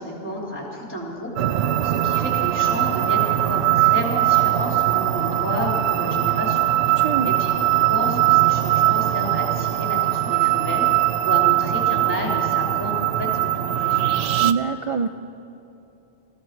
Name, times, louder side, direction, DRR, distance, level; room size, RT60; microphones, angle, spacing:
voice 1, 0.0-10.9 11.2-14.1, equal, 10° left, -3 dB, 3.2 m, -31 dB
sound 1, 1.4-14.5, right 14 dB, 80° right, 0.8 m, -21 dB
voice 2, 7.0-7.3 14.4-15.1, right 6 dB, 60° right, 7 dB, 0.3 m, -24 dB
20.5 x 14.5 x 4.5 m, 2.9 s
omnidirectional pair, 1.1 m